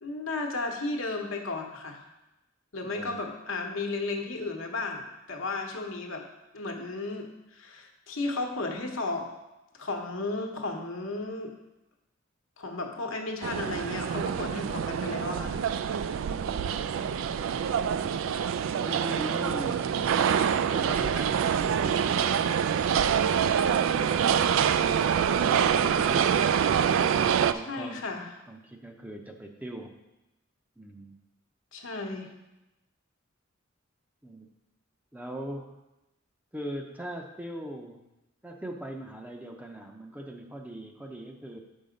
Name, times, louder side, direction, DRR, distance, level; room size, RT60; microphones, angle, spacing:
voice 1, 0.0-2.0 2.7-6.2 6.5-9.3 9.8-11.5 12.6-15.5 27.5-28.3 31.7-32.3, left 3 dB, 75° left, 2 dB, 1.1 m, -34 dB
voice 2, 2.8-3.2 16.2-16.9 18.8-20.0 20.3-22.4 23.6-24.3 27.4-28.2 28.5-30.0 30.8-31.2 34.2-34.5 35.1-35.8 36.5-38.0 38.4-41.6, right 1 dB, 10° right, 2 dB, 0.6 m, -41 dB
sound 1, 13.4-27.5, right 8 dB, 70° right, 0.3 m, -26 dB
6.6 x 5.5 x 5.1 m, 0.97 s
head